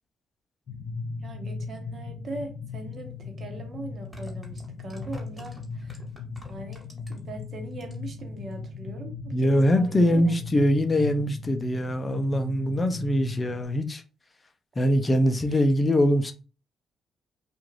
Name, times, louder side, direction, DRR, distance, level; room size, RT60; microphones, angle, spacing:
sound 1, 0.7-13.6, left 4 dB, 70° left, 0.8 m, -38 dB
voice 1, 1.2-6.0 6.5-6.8 7.1-10.4 15.5-15.6, right 2 dB, 55° right, 1.0 m, -40 dB
sound 2, 2.9-3.0 3.9-7.4 7.7-8.2 8.5-8.6, left 1 dB, ahead, 1.3 m, -47 dB
voice 2, 9.3-14.0 14.8-16.3, equal, 30° left, 0.5 m, -23 dB
2.5 x 2.4 x 3.1 m
supercardioid pair, 60°, 0 cm